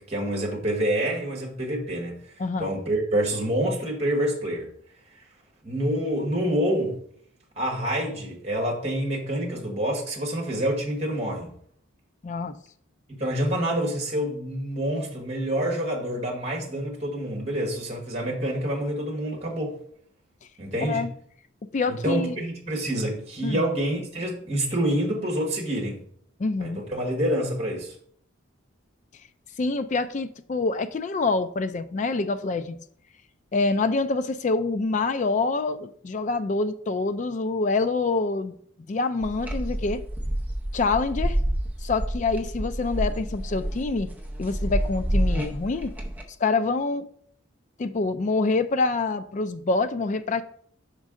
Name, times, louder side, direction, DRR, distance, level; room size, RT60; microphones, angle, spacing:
voice 1, 0.1-2.3 2.6-4.7 5.6-7.0 7.6-11.5 13.1-19.8 20.6-21.0 21.9-26.0 26.6-27.9, right 1 dB, 30° right, 1.3 m, -27 dB
voice 2, 2.4-2.7 12.2-12.6 20.8-21.1 21.7-22.4 23.4-23.7 26.4-26.8 29.6-32.8 33.5-38.6 38.9-40.0 40.7-41.4 41.8-44.1 44.4-45.9 46.4-47.1 47.8-50.4, left 3 dB, 35° left, 0.3 m, -26 dB
sound 1, 39.2-46.2, right 1 dB, 10° right, 0.7 m, -28 dB
5.3 x 5.1 x 3.7 m
head